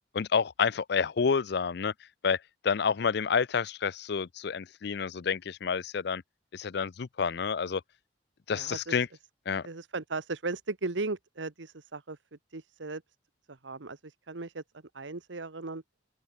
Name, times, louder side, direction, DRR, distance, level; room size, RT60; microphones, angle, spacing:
voice 1, 0.1-1.9 2.2-6.2 6.5-7.8 8.5-9.1 9.5-9.7, left 6 dB, 60° left, 0.5 m, -29 dB
voice 2, 8.5-9.0 9.6-12.2 12.5-13.0 13.5-14.6 14.9-15.8, right 3 dB, 90° right, 1.2 m, -37 dB
open air
head